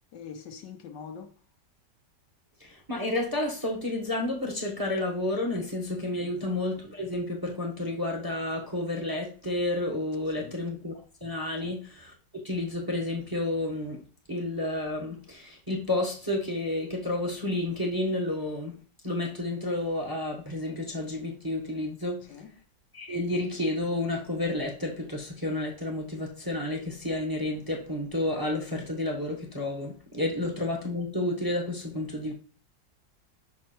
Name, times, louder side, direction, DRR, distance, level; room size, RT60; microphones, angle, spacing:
voice 1, 0.1-1.3 6.2-6.4 10.4-10.6 11.6-11.8 22.3-22.5, left 6 dB, 80° left, 1.4 m, -44 dB
voice 2, 2.6-10.9 11.2-12.1 12.4-14.0 14.3-18.7 19.0-22.2 22.9-32.3, left 2 dB, 15° right, 1.1 m, -31 dB
5.7 x 4.3 x 4.4 m
omnidirectional pair, 1.9 m